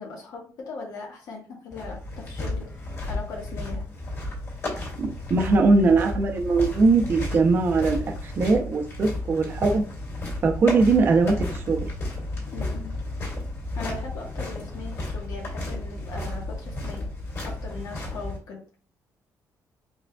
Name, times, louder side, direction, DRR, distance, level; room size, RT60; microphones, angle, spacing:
voice 1, 0.0-2.7 3.1-3.8 12.5-12.9 13.7-17.1 17.4-18.6, left 3 dB, 70° left, -2 dB, 1.3 m, -39 dB
sound 1, 1.7-18.4, left 2 dB, 40° left, 2.2 m, -33 dB
voice 2, 5.0-9.8 10.4-11.8, right 3 dB, 35° right, 2 dB, 0.6 m, -21 dB
4.9 x 3.7 x 2.3 m, 0.39 s
cardioid pair, 175°, 6 cm